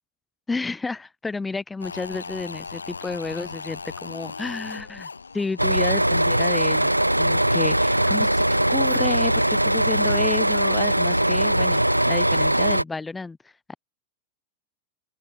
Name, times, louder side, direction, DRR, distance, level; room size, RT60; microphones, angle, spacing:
voice 1, 0.5-6.9 7.2-8.4 8.7-13.8, left 3 dB, 10° left, 1.6 m, -31 dB
sound 1, 1.8-7.0 7.2-7.3, left 4 dB, 80° left, 3.8 m, -38 dB
sound 2, 5.6-12.8, right 1 dB, 90° right, 0.4 m, -21 dB
open air
figure-of-eight pair, 90°, 0 cm